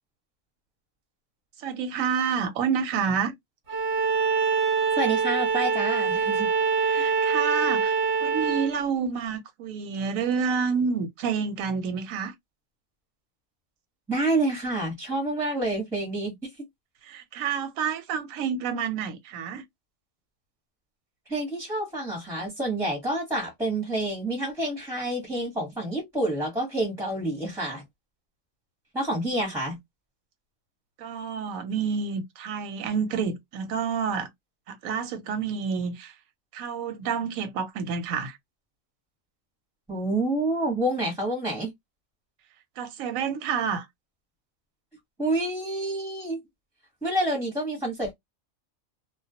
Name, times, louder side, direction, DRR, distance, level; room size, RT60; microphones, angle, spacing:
voice 1, 1.6-3.3 6.8-12.3 17.0-19.6 31.0-34.3 34.7-36.1 36.5-38.4 42.8-43.9, right 6 dB, 90° right, 1.0 m, -29 dB
Bowed string instrument, 3.7-8.7, right 5 dB, 35° right, 0.7 m, -24 dB
voice 2, 5.0-6.5 6.9-7.1 14.1-16.7 21.3-27.8 28.9-29.8 39.9-41.7 45.2-46.4 47.0-48.1, right 1 dB, 5° right, 0.7 m, -28 dB
2.3 x 2.1 x 2.6 m
omnidirectional pair, 1.4 m